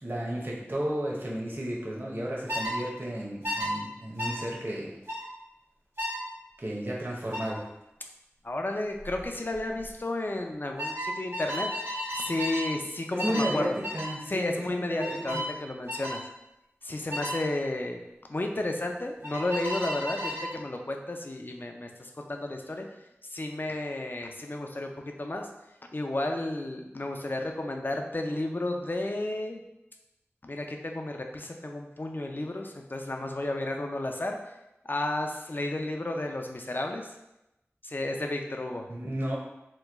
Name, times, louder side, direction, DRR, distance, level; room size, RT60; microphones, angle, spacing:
voice 1, 0.0-4.9 6.6-7.6 13.1-13.7 13.9-15.4 38.9-39.4, right 1 dB, 45° right, -3 dB, 0.8 m, -33 dB
Bicycle Horn, 2.5-2.8 3.4-3.7 4.2-4.4 5.1-5.3 6.0-6.2 7.3-7.5 9.0-9.2 9.5-9.9 10.8-12.7 13.2-13.5 13.8-14.1 15.0-15.5 15.9-16.2 17.1-17.4 19.2-20.5, equal, 65° right, 1.2 m, -33 dB
voice 2, 8.4-13.8 14.3-16.2 16.8-18.0 18.3-22.9 23.3-25.5 25.9-29.6 30.4-34.4 34.8-37.1 37.8-38.9, left 2 dB, 45° left, 3 dB, 0.4 m, -32 dB
3.0 x 2.2 x 3.4 m, 0.91 s
wide cardioid pair, 50°, 5 cm